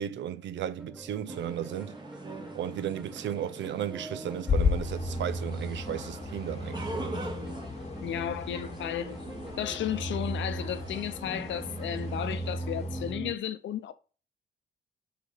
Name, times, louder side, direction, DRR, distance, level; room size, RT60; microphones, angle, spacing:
voice 1, 0.0-2.0 2.5-7.3, right 10 dB, 65° right, 0.7 m, -35 dB
sound 1, 0.8-13.4, right 2 dB, ahead, 0.5 m, -39 dB
sound 2, 1.3-12.6, right 1 dB, 20° right, 1.4 m, -44 dB
sound 3, 4.5-13.1, left 6 dB, 35° left, 1.1 m, -36 dB
voice 2, 8.0-9.2 9.6-13.9, left 10 dB, 70° left, 0.8 m, -34 dB
5.8 x 4.0 x 5.7 m
cardioid pair, 90°, 20 cm